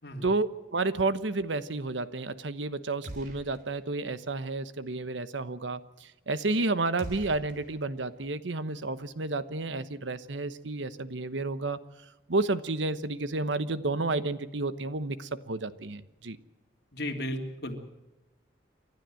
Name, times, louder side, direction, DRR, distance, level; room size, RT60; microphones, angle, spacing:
voice 1, 0.2-11.8 12.3-16.4, right 3 dB, 80° right, 14 dB, 1.1 m, -31 dB
sound 1, 3.0-3.9 4.2-4.3 7.0-8.3, equal, 45° right, 3.7 m, -44 dB
voice 2, 16.9-17.8, left 1 dB, 55° left, 3 dB, 3.0 m, -34 dB
29.5 x 12.5 x 7.8 m, 1.0 s
head